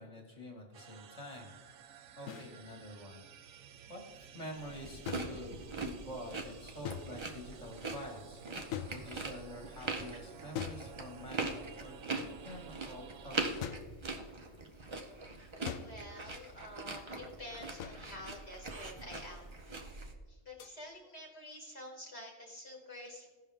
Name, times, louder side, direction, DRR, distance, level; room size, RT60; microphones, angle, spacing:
voice 1, 0.0-1.5 2.2-3.3 3.9-13.6, left 1 dB, 25° left, 1 dB, 1.8 m, -48 dB
sound 1, 0.7-13.6, right 8 dB, 80° right, 1.0 m, -54 dB
sound 2, 2.3-2.5 5.1-5.9 6.8-7.5 8.7-9.5 10.5-11.4 13.6-14.0 15.6-16.2 17.8-18.2 20.6-20.8, left 9 dB, 80° left, 1.0 m, -43 dB
sound 3, 4.6-20.1, right 3 dB, 30° right, 0.6 m, -42 dB
voice 2, 15.7-19.5 20.3-23.3, left 1 dB, 50° left, -2 dB, 1.6 m, -49 dB
16.0 x 5.7 x 3.5 m, 1.3 s
omnidirectional pair, 1.4 m